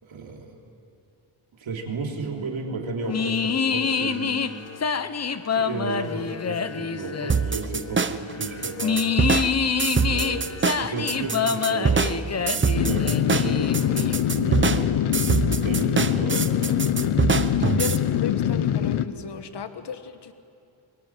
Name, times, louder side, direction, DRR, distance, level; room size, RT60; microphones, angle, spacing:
voice 1, 0.0-0.6 1.6-4.4 5.5-9.2 10.1-14.9 15.3-16.8, right 3 dB, 70° right, 0 dB, 3.6 m, -34 dB
sound 1, 3.0-14.2, left 6 dB, 30° left, 0.9 m, -27 dB
sound 2, 7.3-18.0, right 5 dB, 25° right, 0.8 m, -24 dB
sound 3, 12.7-19.1, left 10 dB, 85° left, 1.0 m, -23 dB
voice 2, 17.5-20.3, left 7 dB, 55° left, 9 dB, 1.6 m, -35 dB
23.0 x 19.0 x 9.2 m, 2.5 s
cardioid pair, 100°, 48 cm